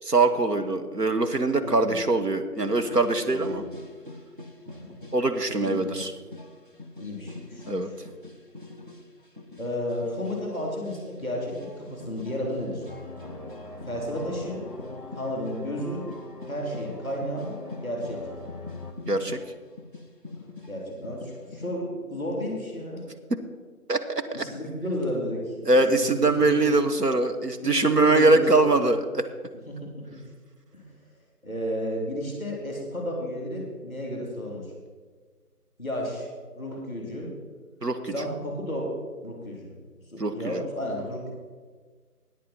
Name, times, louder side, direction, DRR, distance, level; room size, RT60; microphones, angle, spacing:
voice 1, 0.0-3.6 5.1-6.1 7.7-7.9 19.1-19.4 23.9-24.4 25.6-29.2 37.8-38.1 40.2-40.6, right 2 dB, 85° right, 7 dB, 1.3 m, -23 dB
voice 2, 1.6-2.0 3.3-3.6 4.7-5.0 5.6-6.0 7.0-7.8 9.6-12.8 13.8-14.6 15.1-16.1 16.5-17.5 17.8-18.2 20.7-23.0 24.3-26.8 27.6-28.8 29.7-29.9 30.7-30.9 31.4-34.7 35.8-36.3 36.5-37.3 38.1-38.9 39.2-39.7 40.1-41.3, equal, 10° right, -1 dB, 2.6 m, -32 dB
sound 1, 2.6-21.7, left 2 dB, 35° right, 0.9 m, -44 dB
sound 2, 12.9-18.9, left 2 dB, 35° left, 1.0 m, -42 dB
14.0 x 9.4 x 4.4 m, 1.5 s
figure-of-eight pair, 170°, 47 cm